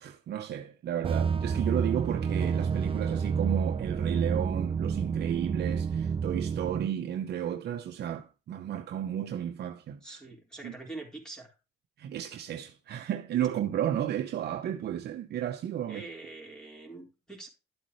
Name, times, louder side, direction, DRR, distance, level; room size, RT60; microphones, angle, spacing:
voice 1, 0.0-10.2 10.6-10.7 12.0-16.0, right 10 dB, 65° right, 0.8 m, -33 dB
sound 1, 1.0-6.9, right 6 dB, 30° right, 0.5 m, -29 dB
voice 2, 10.0-11.5 15.9-17.5, right 3 dB, 5° left, 4.2 m, -44 dB
11.5 x 8.2 x 3.2 m
cardioid pair, 115°, 18 cm